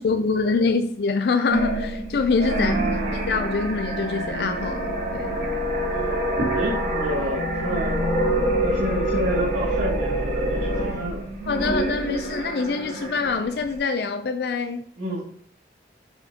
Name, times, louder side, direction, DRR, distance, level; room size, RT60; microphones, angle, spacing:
voice 1, 0.0-2.7 3.1-5.3 11.5-14.8, left 4 dB, 60° left, 0.4 m, -25 dB
sound 1, 1.5-13.8, right 1 dB, 45° right, 3.2 m, -26 dB
voice 2, 2.6-3.3 5.9-8.1 8.6-11.3 15.0-15.2, equal, 90° right, 2.1 m, -30 dB
7.9 x 5.8 x 2.8 m
head